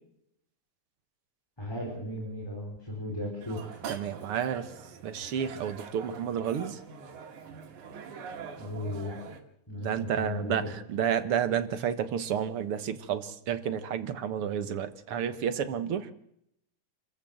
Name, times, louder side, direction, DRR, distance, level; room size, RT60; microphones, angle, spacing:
voice 1, 1.6-3.7 8.6-9.2 9.7-10.7, left 1 dB, 10° left, -1 dB, 4.3 m, -36 dB
sound 1, 3.4-9.4, right 6 dB, 90° right, 3.3 m, -44 dB
voice 2, 3.9-4.7 5.0-6.8 9.8-16.1, right 8 dB, 55° right, 10 dB, 1.9 m, -31 dB
27.0 x 14.5 x 7.9 m, 0.77 s
omnidirectional pair, 3.4 m